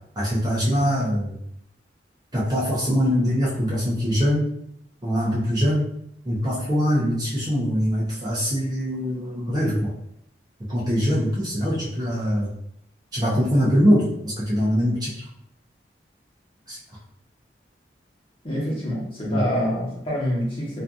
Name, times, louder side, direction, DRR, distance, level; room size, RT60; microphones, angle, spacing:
voice 1, 0.2-1.4 2.3-4.4 5.0-5.9 6.2-9.9 10.7-12.5 13.1-15.2 16.7-16.8 19.3-19.4, equal, 20° right, -6 dB, 0.5 m, -23 dB
voice 2, 18.4-20.8, equal, 30° left, -6 dB, 0.9 m, -26 dB
2.6 x 2.4 x 2.3 m, 0.73 s
head